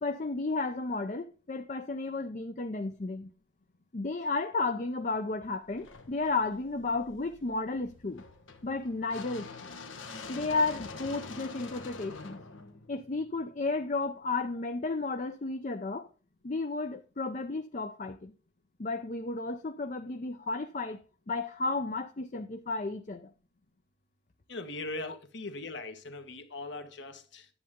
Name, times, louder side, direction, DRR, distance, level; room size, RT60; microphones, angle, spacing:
voice 1, 0.0-3.3 3.9-8.2 8.6-9.7 10.3-12.4 12.9-16.1 16.4-18.3 18.8-21.0 21.3-23.3, left 3 dB, 40° left, 0.5 m, -33 dB
sound 1, 5.7-13.8, left 4 dB, 85° left, 1.3 m, -46 dB
voice 2, 24.5-27.5, left 2 dB, 65° left, 1.3 m, -40 dB
10.5 x 7.6 x 3.6 m
head